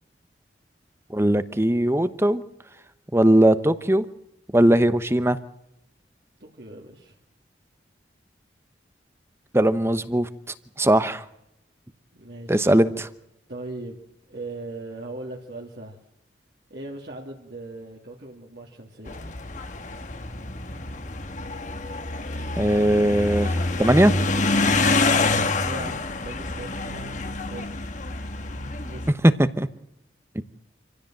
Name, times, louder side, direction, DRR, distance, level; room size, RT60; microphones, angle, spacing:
voice 1, 1.1-2.4 3.1-4.0 4.5-5.4 9.5-10.3 10.8-11.2 12.5-13.1 22.6-24.1 29.4-29.7 30.3-30.4, right 1 dB, 15° right, 12 dB, 1.0 m, -19 dB
voice 2, 6.4-7.2 12.1-12.7 13.5-14.0 14.3-16.0 16.7-19.2 25.1-27.1 27.4-27.7 28.5-29.2, right 2 dB, 65° right, -2 dB, 3.0 m, -39 dB
sound 1, 19.1-29.1, left 3 dB, 45° left, 1.5 m, -27 dB
26.5 x 16.0 x 7.8 m, 0.84 s
head